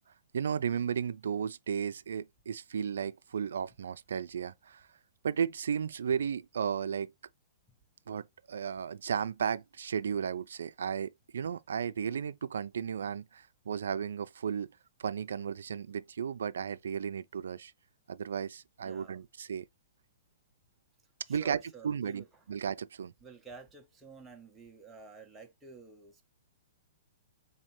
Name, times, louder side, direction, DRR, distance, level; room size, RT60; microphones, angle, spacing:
voice 1, 0.3-4.9 5.2-7.1 8.1-14.7 15.0-17.7 18.1-19.7 21.3-21.6 21.8-23.1, right 7 dB, 85° right, 0.3 m, -34 dB
voice 2, 18.8-19.3 21.0-22.6 23.2-26.3, right 5 dB, 5° right, 0.6 m, -51 dB
4.0 x 3.2 x 2.9 m
hypercardioid pair, 170°, 0 cm